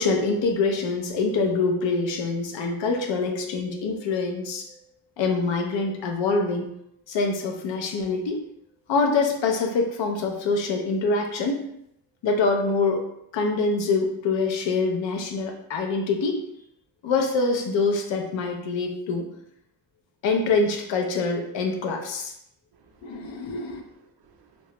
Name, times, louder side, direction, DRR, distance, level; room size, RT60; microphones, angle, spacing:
voice 1, 0.0-4.8 5.2-6.7 7.1-8.4 8.9-11.6 12.2-13.0 13.3-16.4 17.0-19.3 20.2-22.3 23.0-23.8, left 3 dB, 70° left, 3 dB, 0.7 m, -25 dB
voice 2, 22.7-24.7, right 5 dB, 55° right, 3 dB, 0.5 m, -58 dB
2.9 x 2.3 x 2.9 m, 0.74 s
wide cardioid pair, 165°, 46 cm